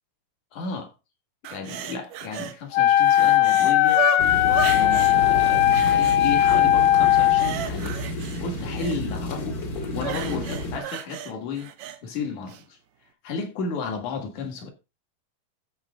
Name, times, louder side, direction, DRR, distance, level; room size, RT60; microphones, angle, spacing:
voice 1, 0.5-0.9 1.5-4.1 4.6-8.0 8.4-9.6 9.9-11.7 12.0-12.8 13.2-14.7, left 5 dB, 55° left, 3.0 m, -33 dB
sound 1, 1.4-2.6 2.9-5.2 5.7-6.6 7.0-9.0 10.0-12.0 12.5-12.6, right 9 dB, 75° right, 1.7 m, -34 dB
Wind instrument woodwind instrument, 2.7-7.5, left 12 dB, 80° left, 2.4 m, -18 dB
sound 2, 4.2-10.8, left 1 dB, 35° left, 1.7 m, -31 dB
14.0 x 5.3 x 3.7 m
omnidirectional pair, 4.4 m